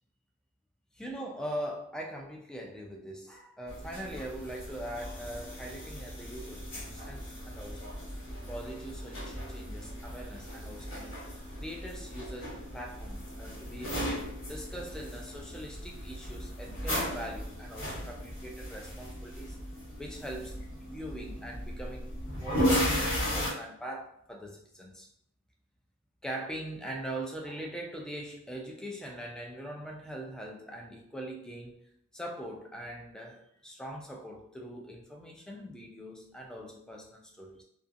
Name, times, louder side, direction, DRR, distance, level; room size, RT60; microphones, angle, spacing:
voice 1, 0.9-7.9 8.5-11.3 11.6-14.2 14.5-19.6 20.0-20.5 20.8-25.1 26.2-31.7 32.1-37.6, right 1 dB, 5° left, 0 dB, 0.3 m, -42 dB
sound 1, 3.7-23.5, equal, 60° left, 1.2 m, -36 dB
2.5 x 2.3 x 2.5 m, 0.73 s
head